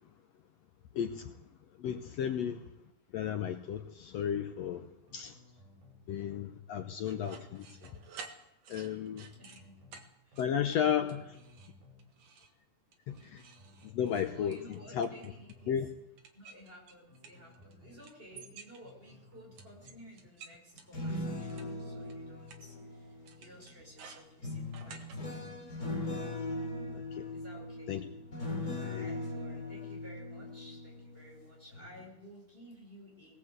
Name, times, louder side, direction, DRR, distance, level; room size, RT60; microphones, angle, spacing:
voice 1, 0.9-1.3 1.8-2.6 3.1-4.9 5.1-5.3 6.1-7.7 8.7-9.3 10.4-11.2 13.1-13.4 13.8-15.1 15.7-15.9 27.1-27.3 27.9-28.0 28.8-29.0, left 8 dB, 80° left, 8 dB, 1.5 m, -33 dB
sound 1, 5.1-6.0 6.3-6.5 6.8-8.1 9.1-10.0 10.3-10.5 10.8-12.1 13.1-14.0 14.3-14.5 14.8-16.1 17.1-18.0 18.3-18.5 18.8-20.1, left 2 dB, 75° right, 9.0 m, -58 dB
sound 2, 7.1-9.6 9.9-10.1 10.3-10.8 11.1-11.7 12.0-12.5 12.9-15.6 16.2-17.7 18.0-19.1 19.6-21.6 22.1-22.2 22.5-22.6 23.3-25.2, right 5 dB, 50° right, 2.6 m, -52 dB
voice 2, 9.4-9.8 10.2-10.5 10.8-11.3 14.3-15.8 16.3-26.0 27.3-28.1 28.7-33.4, equal, 15° right, -1 dB, 6.1 m, -54 dB
sound 3, 20.7-23.6 24.4-31.3 31.7-32.0, left 2 dB, 25° left, 3.7 m, -39 dB
20.5 x 18.5 x 8.1 m, 0.83 s
omnidirectional pair, 4.2 m